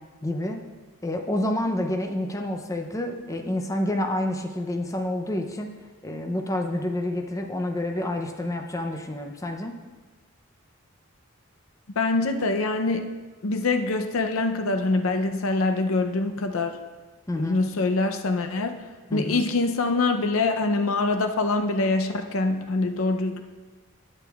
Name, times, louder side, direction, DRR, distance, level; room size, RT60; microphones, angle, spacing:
voice 1, 0.2-0.6 1.0-5.7 6.0-9.7 17.3-17.6 19.1-19.4, left 1 dB, 15° left, 3 dB, 0.5 m, -28 dB
voice 2, 12.0-13.1 13.4-16.8 17.4-18.8 19.1-23.4, left 3 dB, 75° left, 6 dB, 0.6 m, -24 dB
11.5 x 8.9 x 2.4 m, 1.3 s
head